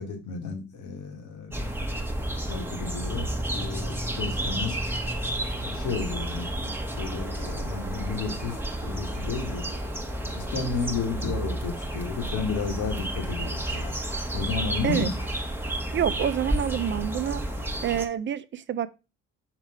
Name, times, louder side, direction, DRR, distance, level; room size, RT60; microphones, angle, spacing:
voice 1, 0.0-1.7 2.4-3.3 3.5-4.8 5.5-9.7 10.3-14.0 14.3-15.1, left 5 dB, 75° left, 1.9 m, -32 dB
sound 1, 1.5-18.0, right 1 dB, 5° right, 1.0 m, -31 dB
voice 2, 15.9-17.4 17.8-18.9, right 9 dB, 40° right, 0.6 m, -27 dB
5.9 x 3.3 x 5.7 m
cardioid pair, 90°, 30 cm